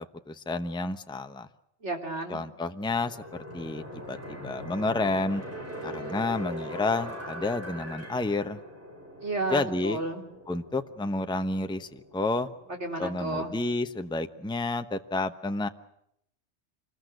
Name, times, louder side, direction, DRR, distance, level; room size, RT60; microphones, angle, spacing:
voice 1, 0.3-1.5 2.3-3.2 3.5-4.2 4.4-5.4 5.8-8.6 9.5-10.0 10.5-12.5 13.0-15.7, left 2 dB, 5° left, 8 dB, 0.9 m, -30 dB
voice 2, 1.8-2.4 9.2-10.2 12.7-13.5, right 2 dB, 75° right, 3 dB, 4.1 m, -32 dB
sound 1, 2.8-13.5, equal, 10° right, 5.6 m, -42 dB
26.5 x 21.0 x 7.9 m, 0.76 s
omnidirectional pair, 1.2 m